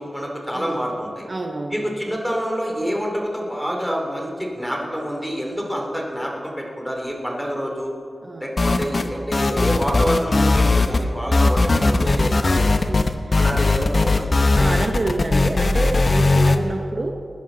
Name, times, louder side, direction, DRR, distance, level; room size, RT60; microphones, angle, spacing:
voice 1, 0.0-1.3 1.7-7.9 8.4-12.7 13.3-14.3, equal, ahead, 0 dB, 2.6 m, -27 dB
voice 2, 0.5-0.9 1.3-1.9 8.2-8.5 12.9-13.6 14.5-17.1, right 2 dB, 40° right, 3 dB, 0.9 m, -28 dB
sound 1, 8.6-9.1 9.3-11.0 11.3-16.6, left 3 dB, 45° left, 0.8 m, -18 dB
19.5 x 10.0 x 3.9 m, 2.3 s
wide cardioid pair, 80°, 0 cm